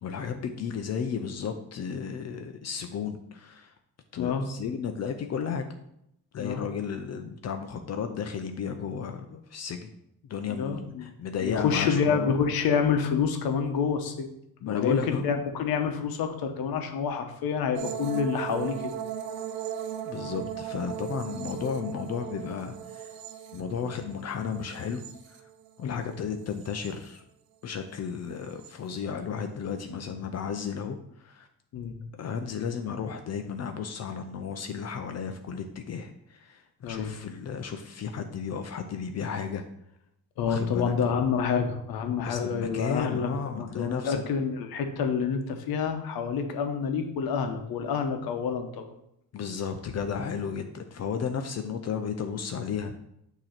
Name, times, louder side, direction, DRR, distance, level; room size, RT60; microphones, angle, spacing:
voice 1, 0.0-3.7 4.1-5.6 6.3-9.9 10.3-12.3 14.6-15.2 20.1-23.1 23.5-25.1 25.8-27.2 27.6-31.5 32.2-39.6 40.4-40.9 42.2-44.2 49.3-52.9, left 6 dB, 45° left, 7 dB, 0.6 m, -33 dB
voice 2, 10.5-11.1 11.4-14.3 14.8-18.8 25.8-26.0 31.7-31.9 36.8-37.1 40.4-43.3 43.6-48.9, left 6 dB, 85° left, 6 dB, 1.0 m, -28 dB
sound 1, 17.7-25.9 26.3-27.2 28.4-28.7, right 10 dB, 80° right, 0.7 m, -38 dB
6.5 x 3.0 x 5.8 m, 0.77 s
cardioid pair, 125°, 35 cm